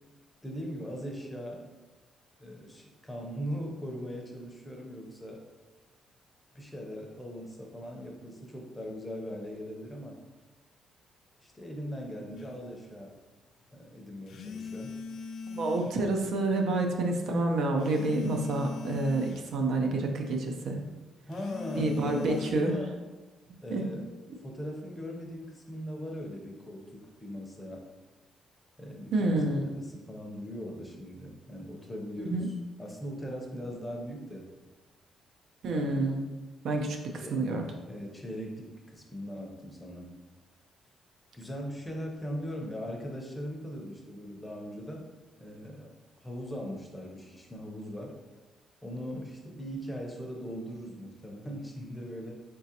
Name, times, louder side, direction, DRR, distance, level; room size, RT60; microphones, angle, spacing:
voice 1, 0.4-1.7 2.4-5.4 6.5-10.2 11.4-13.1 13.7-14.9 21.3-22.9 23.6-24.1 24.4-27.9 28.8-29.4 29.8-32.5 32.8-34.5 35.7-36.0 37.2-37.4 37.9-40.2 41.3-45.1 45.4-45.9 46.2-48.2 48.8-52.4, equal, 10° left, 0 dB, 0.7 m, -40 dB
sound 1, 12.4-12.5 14.3-16.0 17.8-19.5 21.3-22.5, left 4 dB, 70° left, 0.3 m, -40 dB
voice 2, 15.5-20.8 21.8-22.8 23.7-23.8 29.1-29.7 32.2-32.5 35.6-36.3 36.6-37.0 37.3-37.6, right 2 dB, 70° right, 3 dB, 0.6 m, -28 dB
4.0 x 3.7 x 2.8 m, 1.2 s
cardioid pair, 130°, 0 cm